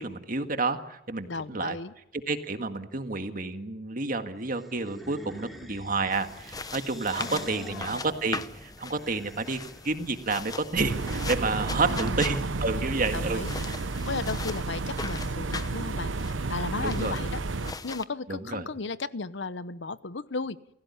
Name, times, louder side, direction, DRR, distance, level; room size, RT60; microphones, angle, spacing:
voice 1, 0.0-1.8 2.3-13.8 14.1-14.2 16.8-17.2 18.3-18.7, right 3 dB, 45° right, 8 dB, 1.8 m, -30 dB
voice 2, 1.3-1.9 7.2-8.0 11.7-12.3 13.1-13.5 14.1-16.1 16.5-17.4 17.8-20.6, left 3 dB, 65° left, 16 dB, 0.9 m, -35 dB
sound 1, 4.6-10.0, equal, ahead, 3.3 m, -47 dB
sound 2, 6.1-18.1, left 4 dB, 20° left, 0.9 m, -40 dB
sound 3, 10.8-17.7, right 3 dB, 80° right, 0.9 m, -31 dB
28.5 x 16.5 x 9.9 m, 0.81 s
head